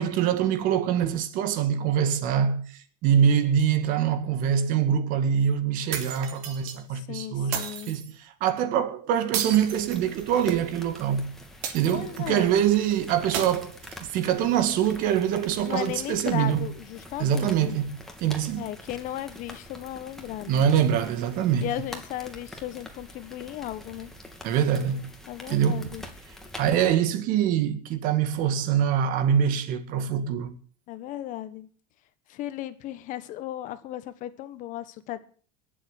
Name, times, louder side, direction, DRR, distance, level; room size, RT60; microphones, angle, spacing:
voice 1, 0.0-7.6 7.9-11.3 11.7-16.7 17.2-17.9 18.2-18.7 20.5-21.7 24.4-25.1 25.5-25.9 26.6-30.5, right 9 dB, 55° right, 2.1 m, -24 dB
sound 1, 5.9-6.8 7.5-8.1 9.3-10.5 11.6-12.3 13.3-14.3, right 8 dB, 70° right, 3.4 m, -33 dB
voice 2, 7.0-7.9 11.9-12.5 15.6-17.8 18.6-20.7 21.6-24.1 25.3-26.0 30.9-31.7 32.3-35.2, left 13 dB, 50° left, 1.4 m, -35 dB
sound 2, 9.6-26.8, left 1 dB, ahead, 2.7 m, -45 dB
21.0 x 7.8 x 6.7 m
supercardioid pair, 135°, 17 cm